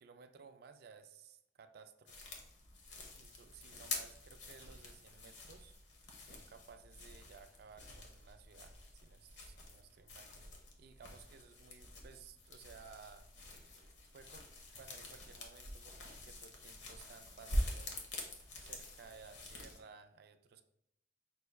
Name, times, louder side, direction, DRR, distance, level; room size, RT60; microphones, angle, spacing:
voice 1, 0.0-2.2 3.2-5.8 6.2-10.3 10.8-13.3 14.1-14.5 14.8-18.0 18.6-20.6, right 5 dB, 55° right, 9 dB, 0.3 m, -57 dB
sound 1, 2.1-19.8, left 1 dB, 75° left, 0.9 m, -46 dB
5.2 x 2.2 x 3.2 m, 0.78 s
head